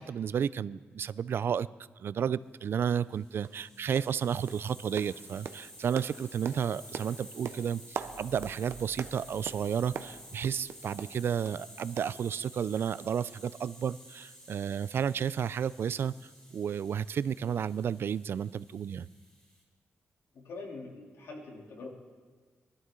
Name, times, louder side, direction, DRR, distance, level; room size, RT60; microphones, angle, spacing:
voice 1, 0.0-1.7 2.0-19.1, right 8 dB, 60° right, 18 dB, 0.3 m, -32 dB
sound 1, 2.5-2.6 3.0-3.1 3.4-3.7 4.0-4.2 4.5-11.6 12.0-12.7 13.0-13.1 13.5-13.6, right 8 dB, 85° right, 0.7 m, -43 dB
Hiss, 3.0-19.6, equal, 15° left, 3.6 m, -52 dB
sound 2, 7.9-11.3, right 4 dB, 20° right, 4.8 m, -56 dB
voice 2, 20.3-21.9, left 3 dB, 80° left, -1 dB, 3.0 m, -44 dB
23.5 x 12.5 x 3.8 m, 1.5 s
wide cardioid pair, 120°, 4 cm